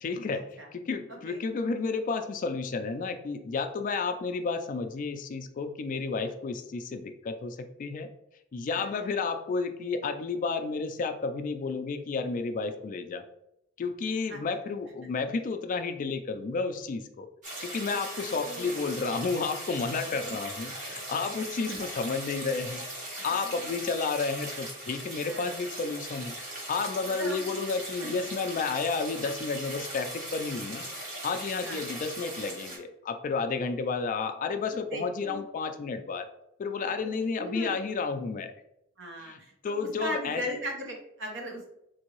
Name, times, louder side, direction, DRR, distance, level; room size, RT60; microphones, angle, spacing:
voice 1, 0.0-8.1 8.5-13.2 13.8-17.3 17.6-22.9 23.2-26.4 26.7-30.9 31.2-36.3 36.6-38.5 39.2-40.5, left 4 dB, 40° left, 8 dB, 0.3 m, -31 dB
voice 2, 8.7-9.1 14.3-14.4 17.9-18.8 20.3-20.4 21.7-21.8 23.5-23.7 25.2-25.4 27.1-27.4 28.0-28.1 31.6-31.8 34.7-35.4 37.4-37.7 39.0-41.7, equal, 65° right, 1 dB, 0.9 m, -38 dB
sound 1, 17.4-32.8, right 1 dB, 40° right, 1.1 m, -39 dB
3.7 x 2.6 x 2.9 m, 0.80 s
head